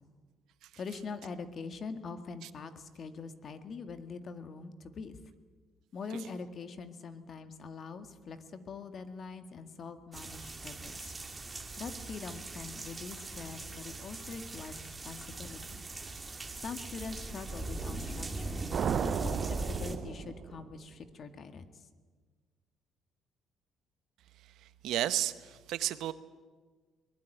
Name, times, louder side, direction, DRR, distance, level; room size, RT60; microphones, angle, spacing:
voice 1, 0.8-5.2 5.9-11.2 11.8-15.8 16.6-18.7 19.0-21.8, left 4 dB, 50° left, 9 dB, 1.9 m, -43 dB
sound 1, 10.1-20.0, right 2 dB, 20° right, 2.6 m, -40 dB
sound 2, 18.7-20.9, right 8 dB, 55° right, 0.6 m, -34 dB
voice 2, 24.6-26.1, right 13 dB, 80° right, 14 dB, 1.0 m, -33 dB
22.0 x 20.5 x 9.3 m, 1.4 s
cardioid pair, 95°, 0 cm